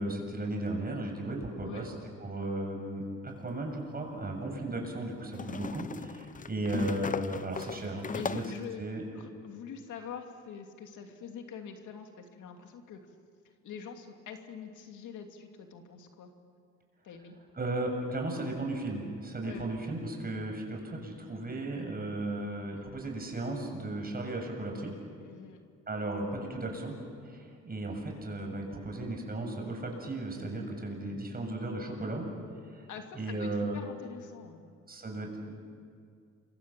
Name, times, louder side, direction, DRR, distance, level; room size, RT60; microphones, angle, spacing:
voice 1, 0.0-1.9 2.2-8.4 8.8-9.0 17.6-24.9 25.9-26.9 27.2-32.3 32.7-32.8 33.1-33.8 34.9-35.5, right 2 dB, 30° right, 2 dB, 7.1 m, -35 dB
sound 1, 3.4-3.5 5.3-8.7, left 5 dB, 25° left, 0.7 m, -38 dB
voice 2, 8.1-8.8 9.1-13.0 13.6-16.3 17.0-17.3 19.4-19.7 25.2-25.6 32.9-34.6, left 7 dB, 80° left, 4 dB, 2.7 m, -45 dB
28.0 x 24.5 x 7.6 m, 2.2 s
cardioid pair, 90°, 30 cm